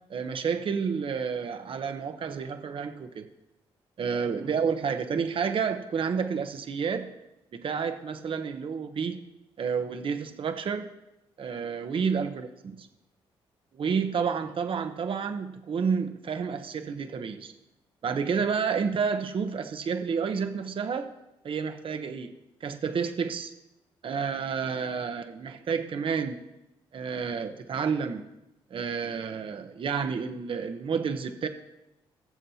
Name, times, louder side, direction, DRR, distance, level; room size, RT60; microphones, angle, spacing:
voice 1, 0.1-3.3 4.0-7.1 7.5-9.2 9.6-10.9 11.4-12.9 13.7-17.5 18.0-21.1 21.4-22.3 22.6-23.5 24.0-26.4 26.9-28.3 28.7-31.5, right 6 dB, 55° right, 8 dB, 0.8 m, -30 dB
20.0 x 7.3 x 2.8 m, 0.92 s
cardioid pair, 65°, 11 cm